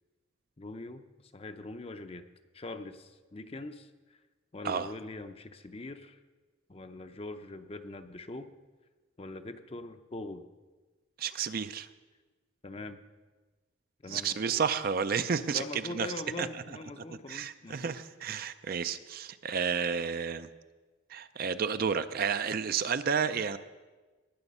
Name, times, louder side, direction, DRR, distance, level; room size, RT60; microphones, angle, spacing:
voice 1, 0.6-1.1 1.3-2.3 2.5-4.2 4.5-6.2 6.7-8.5 9.2-10.5 12.6-13.0 14.0-14.6 15.5-17.9 18.2-18.5, left 2 dB, 30° left, 9 dB, 0.6 m, -42 dB
voice 2, 11.2-11.9 14.1-16.1 16.4-16.5 17.0-20.5 21.1-23.6, right 6 dB, 45° right, 11 dB, 0.4 m, -31 dB
19.5 x 7.0 x 5.4 m, 1.3 s
head